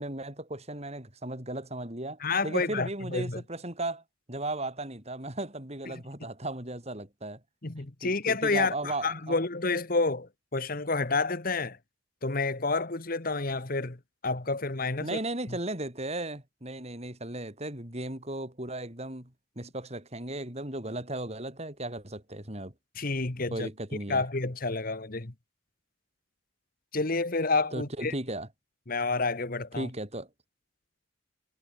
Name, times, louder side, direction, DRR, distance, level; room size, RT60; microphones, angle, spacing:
voice 1, 0.0-4.0 4.3-7.4 8.0-9.4 15.0-22.7 23.5-24.3 27.7-28.5 29.8-30.3, right 1 dB, 35° right, 5.3 m, -36 dB
voice 2, 2.2-3.4 5.9-6.0 7.6-11.8 12.2-15.2 15.5-15.6 22.9-23.7 24.1-25.3 26.9-28.1 28.9-29.9, left 3 dB, 45° left, 1.4 m, -29 dB
head